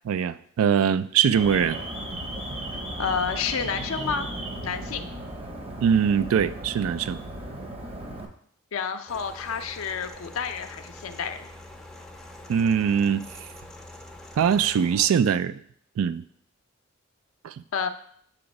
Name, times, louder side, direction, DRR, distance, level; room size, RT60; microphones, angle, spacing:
voice 1, 0.1-1.8 5.8-7.2 12.5-13.3 14.4-15.6 16.0-16.2 17.4-17.5, right 7 dB, 85° right, 14 dB, 0.3 m, -22 dB
Alarm, 1.3-8.3, right 1 dB, 30° right, 0.7 m, -35 dB
voice 2, 3.0-4.3 4.6-5.1 8.7-11.5 17.7-17.9, left 6 dB, 75° left, 7 dB, 0.5 m, -29 dB
sound 1, 9.1-15.1, left 1 dB, ahead, 0.4 m, -45 dB
6.9 x 2.9 x 5.2 m, 0.64 s
head